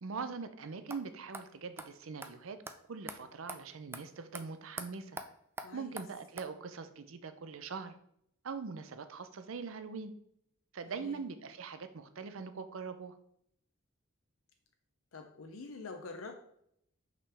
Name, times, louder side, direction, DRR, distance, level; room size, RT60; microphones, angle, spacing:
voice 1, 0.0-2.6 2.9-5.2 5.7-7.9 8.4-10.1 10.7-13.2, right 5 dB, 80° right, 0.6 m, -42 dB
sound 1, 0.9-1.0 1.3-1.4 1.8-1.9 2.2-2.3 2.7-2.8 3.1-3.2 3.5-3.6 3.9-4.0 4.3-4.4 4.8-4.9 5.2-5.3 5.6-5.7 6.0-6.1 6.4-6.5, right 3 dB, 10° right, 0.3 m, -42 dB
voice 2, 5.6-5.9 10.9-11.2 15.1-16.3, left 3 dB, 90° left, 0.6 m, -46 dB
5.6 x 5.2 x 3.5 m
head